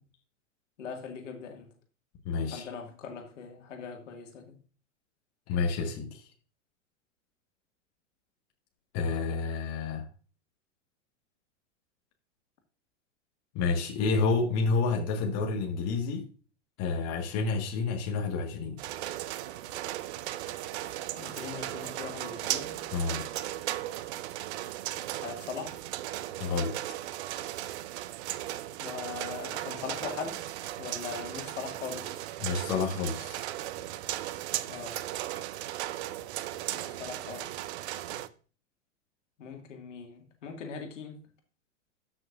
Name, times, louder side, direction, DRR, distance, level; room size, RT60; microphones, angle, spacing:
voice 1, 0.8-1.7 2.5-4.6 21.2-22.8 25.2-25.8 28.8-30.4 30.8-32.2 34.7-35.0 36.7-37.5 39.4-41.2, left 5 dB, 75° left, 2.2 m, -40 dB
voice 2, 2.2-2.6 5.5-6.2 8.9-10.1 13.5-16.3 16.8-18.8 22.9-23.3 26.4-26.7 32.4-33.5, left 4 dB, 45° left, 1.7 m, -29 dB
sound 1, 18.8-38.3, right 14 dB, 60° right, 0.7 m, -36 dB
13.0 x 6.1 x 2.6 m
hypercardioid pair, 100°, 38 cm